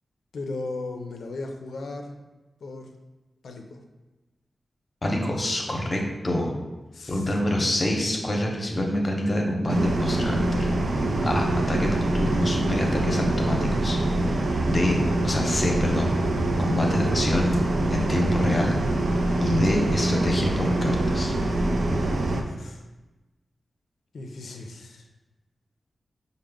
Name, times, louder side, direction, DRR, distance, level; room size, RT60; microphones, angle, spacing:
voice 1, 0.3-2.1 2.6-2.9 3.4-3.8 6.9-7.3 22.3-22.9 24.1-25.1, left 3 dB, 85° left, 3 dB, 0.4 m, -36 dB
voice 2, 5.0-6.5 7.1-10.7 11.2-14.0 14.3-14.4 14.6-15.0 15.2-16.1 16.6-17.6 17.9-18.8 19.4-21.3, left 1 dB, 40° left, 0 dB, 0.7 m, -26 dB
sound 1, 9.7-22.4, right 1 dB, 70° right, 0.4 m, -24 dB
4.9 x 2.0 x 3.4 m, 1.1 s
cardioid pair, 60°, 0 cm